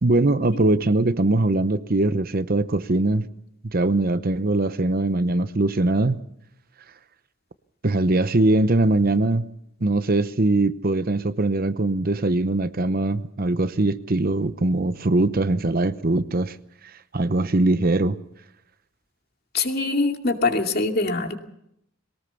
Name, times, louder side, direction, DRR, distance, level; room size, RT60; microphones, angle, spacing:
voice 1, 0.0-3.3 3.6-6.2 7.8-9.5 9.8-16.6 17.1-18.2, right 2 dB, 45° right, 13 dB, 0.8 m, -21 dB
voice 2, 19.5-21.4, left 3 dB, 50° left, 4 dB, 2.5 m, -23 dB
22.5 x 18.5 x 7.0 m, 0.77 s
head